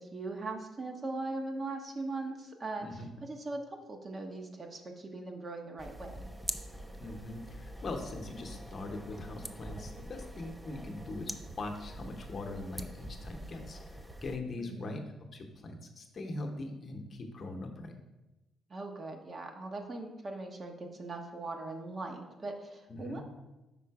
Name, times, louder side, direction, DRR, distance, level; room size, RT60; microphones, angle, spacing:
voice 1, 0.0-6.2 14.6-14.9 18.7-23.4, right 2 dB, 35° right, 3 dB, 0.8 m, -40 dB
sound 1, 5.8-14.4, right 1 dB, 10° right, 0.4 m, -44 dB
voice 2, 7.0-15.0 15.3-17.9 22.9-23.2, left 2 dB, 45° left, 3 dB, 0.8 m, -41 dB
5.4 x 3.8 x 4.6 m, 1.0 s
cardioid pair, 90°, 0 cm